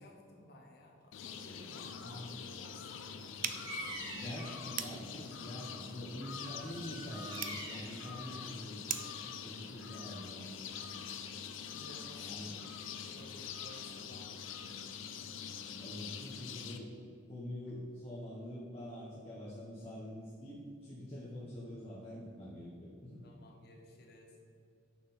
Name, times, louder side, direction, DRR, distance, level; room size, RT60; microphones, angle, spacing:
voice 1, 0.0-4.3 11.7-12.6 13.0-15.1 23.2-24.4, left 1 dB, 55° left, 1 dB, 1.0 m, -57 dB
sound 1, 1.1-16.8, left 7 dB, 75° left, 0.5 m, -45 dB
voice 2, 2.0-2.3 4.1-9.0 9.4-10.8 12.2-12.5 15.8-16.9 17.3-23.2, left 1 dB, 30° left, -8 dB, 0.9 m, -45 dB
sound 2, 3.4-9.3, right 9 dB, 40° right, 0.3 m, -44 dB
Bird vocalization bird call bird song, 3.6-4.6 6.4-8.0, right 1 dB, 20° right, 1.0 m, -45 dB
6.2 x 5.8 x 4.0 m, 2.3 s
head